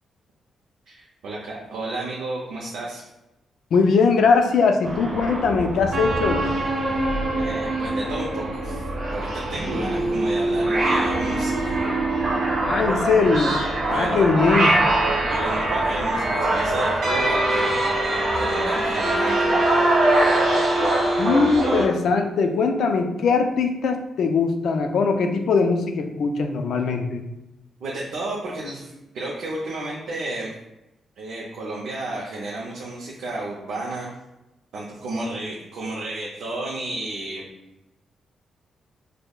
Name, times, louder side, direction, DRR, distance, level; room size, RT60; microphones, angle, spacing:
voice 1, 0.9-3.1 7.3-8.8 9.1-11.8 12.9-13.0 13.9-14.2 15.3-17.9 18.3-19.5 27.8-30.5 31.2-34.2 34.7-37.5, right 2 dB, 75° right, -4 dB, 0.6 m, -32 dB
voice 2, 3.7-6.5 12.6-13.6 13.9-14.8 21.2-27.2, left 4 dB, 60° left, 5 dB, 0.3 m, -21 dB
sound 1, 4.8-21.8, right 1 dB, 60° right, 1.4 m, -23 dB
5.2 x 2.1 x 2.3 m, 0.94 s
wide cardioid pair, 180°, 0 cm